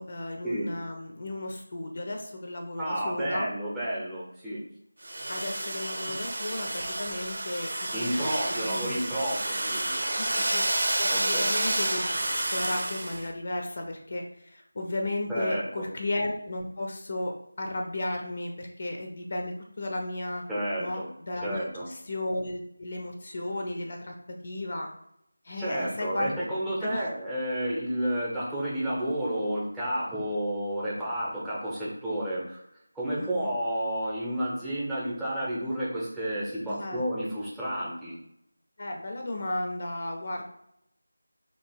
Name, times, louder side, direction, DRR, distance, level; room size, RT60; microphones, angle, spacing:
voice 1, 0.0-3.5 5.3-8.9 9.7-10.6 11.0-20.4 20.8-24.9 25.4-26.3 26.8-27.1 33.2-33.5 36.7-37.0 38.8-40.4, left 1 dB, 40° left, 2 dB, 0.5 m, -34 dB
voice 2, 2.8-4.6 6.0-6.2 7.9-10.0 11.1-11.4 15.3-15.9 20.5-21.1 21.4-21.9 25.6-32.6 32.9-38.2, right 1 dB, 5° right, -9 dB, 0.8 m, -31 dB
Domestic sounds home sounds, 5.0-13.3, right 1 dB, 50° right, 0.7 m, -30 dB
2.8 x 2.8 x 4.4 m, 0.77 s
figure-of-eight pair, 170°, 0 cm